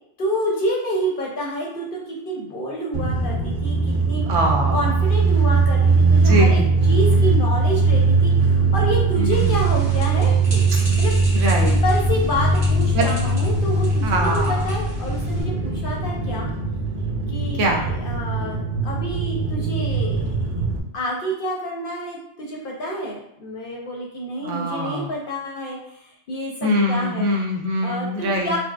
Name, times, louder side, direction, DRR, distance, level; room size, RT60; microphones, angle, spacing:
voice 1, 0.2-4.2 4.7-6.6 6.9-11.1 11.6-16.5 17.3-20.4 20.9-27.3 27.8-28.6, equal, 60° left, -2 dB, 0.6 m, -28 dB
sound 1, 2.9-20.8, right 3 dB, 60° right, 0.5 m, -20 dB
voice 2, 4.3-4.8 6.2-6.7 9.1-9.7 11.3-11.7 12.9-13.1 14.0-14.6 17.6-17.8 24.4-25.1 26.6-28.5, right 1 dB, 80° right, 2 dB, 0.9 m, -23 dB
sound 2, 9.3-15.4, right 1 dB, 35° right, 1.2 m, -36 dB
4.2 x 2.0 x 2.3 m, 0.77 s
omnidirectional pair, 1.2 m